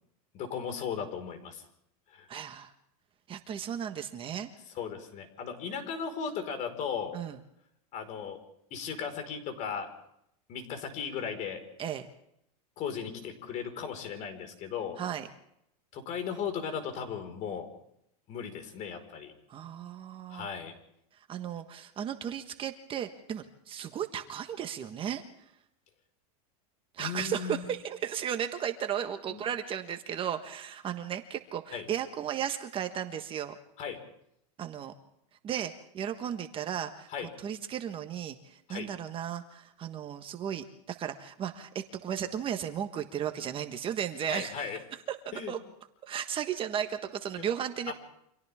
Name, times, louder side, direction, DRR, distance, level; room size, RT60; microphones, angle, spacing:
voice 1, 0.3-1.6 2.1-2.3 4.7-7.2 7.9-8.4 8.7-9.9 10.5-11.6 12.8-15.0 15.9-17.7 18.3-19.3 20.3-20.7 27.0-27.6 29.3-29.4 31.7-31.8 33.8-34.0 37.1-37.3 38.7-38.9 44.3-44.8 45.3-45.5 47.4-47.5 47.9-48.0, left 7 dB, 40° left, 6 dB, 4.9 m, -36 dB
voice 2, 2.3-2.7 3.3-4.5 7.1-7.4 11.8-12.1 15.0-15.3 19.5-20.5 21.3-25.2 26.9-33.6 34.6-34.9 35.4-37.1 37.4-44.7 45.1-45.6 46.1-47.9, right 9 dB, 25° right, 7 dB, 1.4 m, -35 dB
29.5 x 26.0 x 3.6 m, 0.75 s
supercardioid pair, 140°, 19 cm